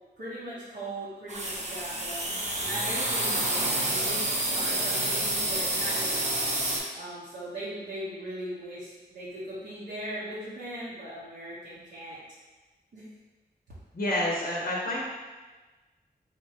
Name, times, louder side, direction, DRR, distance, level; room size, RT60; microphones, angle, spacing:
voice 1, 0.2-4.2 4.5-6.5 6.9-12.2 12.9-13.0, right 1 dB, 70° right, -10 dB, 0.8 m, -39 dB
sound 1, 1.3-6.8, right 1 dB, 45° right, 0.7 m, -28 dB
voice 2, 13.9-15.0, left 1 dB, 55° left, -4 dB, 0.6 m, -28 dB
3.6 x 2.1 x 3.2 m, 1.3 s
cardioid pair, 55°, 18 cm